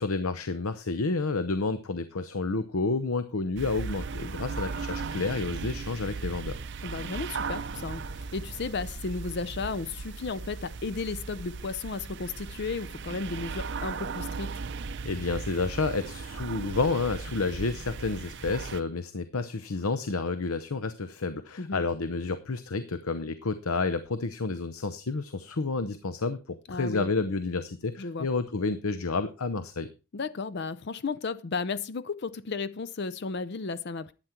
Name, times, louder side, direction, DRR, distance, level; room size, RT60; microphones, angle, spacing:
voice 1, 0.0-6.6 15.0-29.9, left 3 dB, 75° left, 0.8 m, -30 dB
sound 1, 3.6-18.8, right 4 dB, 50° right, 0.6 m, -37 dB
voice 2, 6.8-14.6 21.6-21.8 26.7-27.1 28.0-28.3 30.1-34.1, left 4 dB, 50° left, 0.5 m, -34 dB
11.5 x 9.0 x 4.5 m
head